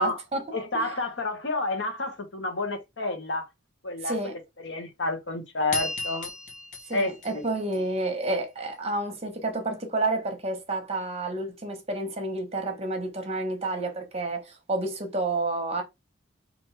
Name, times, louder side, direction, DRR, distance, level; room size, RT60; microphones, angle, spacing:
voice 1, 0.0-0.4 0.7-1.0 4.0-4.4 6.9-15.8, right 2 dB, 35° right, 1.0 m, -30 dB
voice 2, 0.5-3.5 3.8-6.3 6.9-7.5, left 2 dB, 70° left, 0.9 m, -30 dB
sound 1, 5.7-8.3, left 3 dB, 40° left, 0.9 m, -35 dB
4.5 x 2.6 x 3.2 m
head